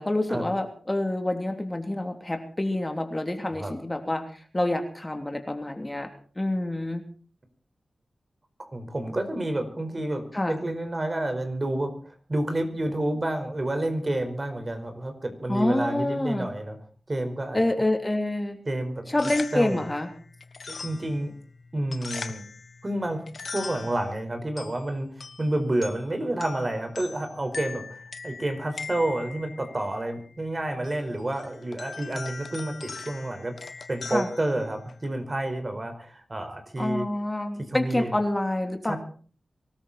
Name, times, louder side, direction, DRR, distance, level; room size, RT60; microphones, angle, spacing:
voice 1, 0.0-7.0 10.3-10.6 15.5-16.5 17.5-18.6 19.1-20.1 34.1-34.3 36.8-39.0, left 1 dB, 25° left, 6 dB, 3.1 m, -27 dB
voice 2, 8.6-16.8 17.1-17.6 18.6-19.1 19.5-19.8 20.7-21.3 21.7-22.4 22.8-23.2 23.5-25.1 25.4-27.8 28.2-37.1 37.7-38.1 38.9-39.0, right 1 dB, 40° right, 7 dB, 4.9 m, -29 dB
sound 1, 19.0-35.2, left 4 dB, 70° left, 1.4 m, -41 dB
24.5 x 13.5 x 4.3 m, 0.42 s
cardioid pair, 40°, 0 cm